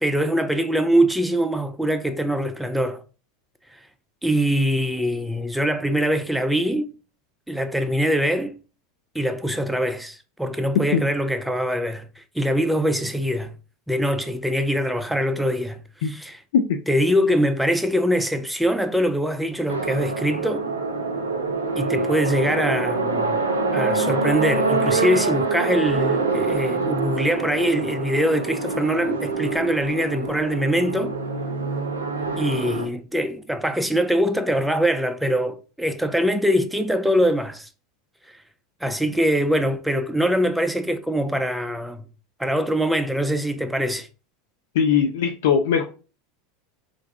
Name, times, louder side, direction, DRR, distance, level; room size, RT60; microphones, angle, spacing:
voice 1, 0.0-3.0 3.7-3.8 4.2-6.9 7.5-8.6 9.1-13.5 13.9-16.4 16.9-20.7 21.8-23.4 23.7-31.2 32.4-37.7 38.8-42.0 42.4-44.1, equal, ahead, 0.4 m, -23 dB
sound 1, 19.7-32.9, right 3 dB, 90° right, 0.5 m, -25 dB
voice 2, 44.7-45.8, left 7 dB, 70° left, 0.3 m, -20 dB
2.5 x 2.2 x 3.5 m
hypercardioid pair, 85°, 0 cm